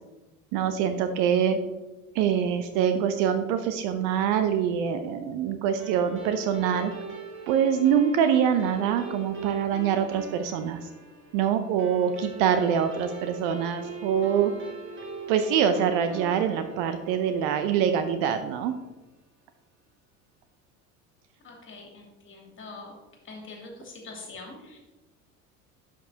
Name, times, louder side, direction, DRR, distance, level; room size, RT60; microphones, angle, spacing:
voice 1, 0.5-1.6 2.1-6.9 7.5-10.8 11.3-14.5 15.3-18.7, right 8 dB, 45° right, 9 dB, 0.6 m, -24 dB
sound 1, 5.8-18.5, right 4 dB, 25° right, 1.7 m, -42 dB
voice 2, 21.4-23.0 23.2-24.8, left 3 dB, 25° left, -1 dB, 2.7 m, -44 dB
11.5 x 6.0 x 2.8 m, 1.1 s
figure-of-eight pair, 70°, 44 cm